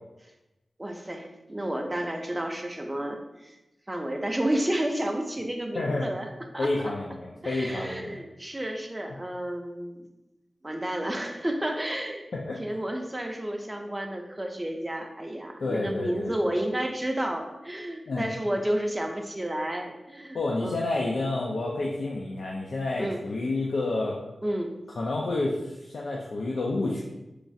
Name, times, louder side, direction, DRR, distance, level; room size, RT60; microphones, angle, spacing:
voice 1, 0.8-3.6 3.9-6.7 7.4-10.0 10.6-12.3 12.6-20.8 23.0-23.2 24.4-24.7, right 1 dB, 20° right, 3 dB, 0.4 m, -31 dB
voice 2, 5.7-6.1 6.6-8.2 12.3-12.6 15.6-16.3 18.1-18.3 20.3-24.2 25.0-27.0, left 2 dB, 80° left, -3 dB, 0.3 m, -29 dB
3.1 x 2.3 x 2.6 m, 0.97 s
wide cardioid pair, 85°, 0 cm